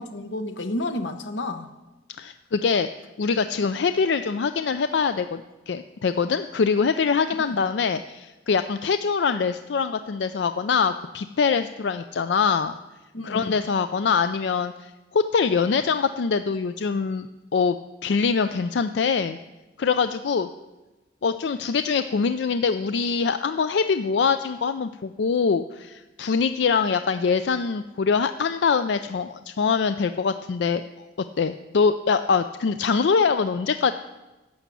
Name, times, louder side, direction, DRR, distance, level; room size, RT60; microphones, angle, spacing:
voice 1, 0.0-1.7 7.6-7.7 13.1-13.7, left 1 dB, 90° left, 9 dB, 1.0 m, -31 dB
voice 2, 2.2-2.9 3.2-12.8 13.2-17.8 18.0-19.4 19.8-20.5 21.2-30.8 31.4-33.9, left 5 dB, 70° left, 11 dB, 0.4 m, -23 dB
11.5 x 7.2 x 8.3 m, 1.1 s
head